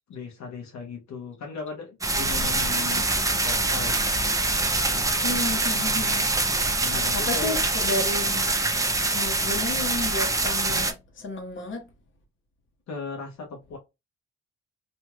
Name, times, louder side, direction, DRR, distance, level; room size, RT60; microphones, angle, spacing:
voice 1, 0.1-3.1 3.4-4.0 6.8-7.6 12.9-13.8, left 4 dB, 65° left, 0.9 m, -37 dB
sound 1, 2.0-10.9, right 2 dB, 10° right, 0.4 m, -24 dB
voice 2, 5.2-6.2 6.5-8.5 9.1-11.9, left 2 dB, 40° left, 1.1 m, -32 dB
3.0 x 2.7 x 2.3 m
cardioid pair, 90°, 30 cm